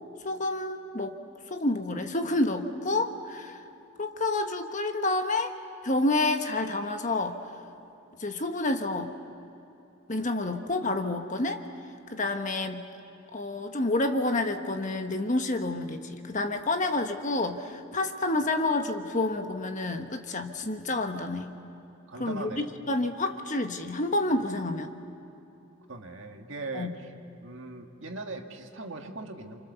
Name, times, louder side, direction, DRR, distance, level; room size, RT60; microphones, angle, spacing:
voice 1, 0.2-1.2 1.5-3.6 4.0-5.5 5.8-7.6 8.2-9.1 10.1-11.6 12.1-12.8 13.3-21.5 22.2-24.9 26.7-26.9, left 2 dB, 35° left, 6 dB, 1.3 m, -29 dB
voice 2, 22.1-22.7 25.9-27.1 27.4-29.6, right 3 dB, 60° right, 3 dB, 2.0 m, -39 dB
29.5 x 27.0 x 7.0 m, 3.0 s
head